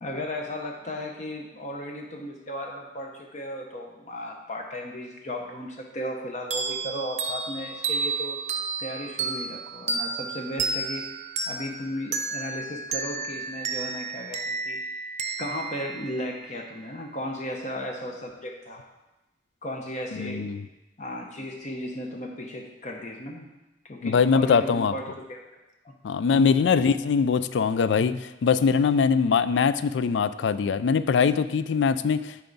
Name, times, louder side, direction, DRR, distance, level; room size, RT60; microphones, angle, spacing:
voice 1, 0.0-8.4 8.8-11.2 11.5-14.8 15.4-18.8 19.6-20.5 21.0-23.5 23.8-25.4 25.8-25.9 26.3-26.6, left 1 dB, 40° left, 1 dB, 0.8 m, -35 dB
sound 1, 6.5-16.8, right 4 dB, 40° right, 0.6 m, -32 dB
voice 2, 20.1-20.6 24.0-24.9 26.0-32.4, left 6 dB, 80° left, 14 dB, 0.3 m, -22 dB
10.5 x 4.6 x 4.0 m, 1.0 s
head